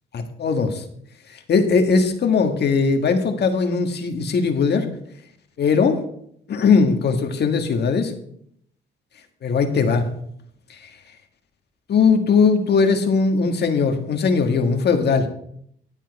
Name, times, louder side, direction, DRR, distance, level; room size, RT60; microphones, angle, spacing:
voice 1, 0.1-0.8 1.3-4.9 5.6-6.0 6.5-8.1 9.4-10.0 10.7-10.9 11.9-15.3, left 5 dB, 55° left, 5 dB, 1.6 m, -19 dB
12.0 x 7.3 x 4.7 m, 0.68 s
cardioid pair, 90°, 20 cm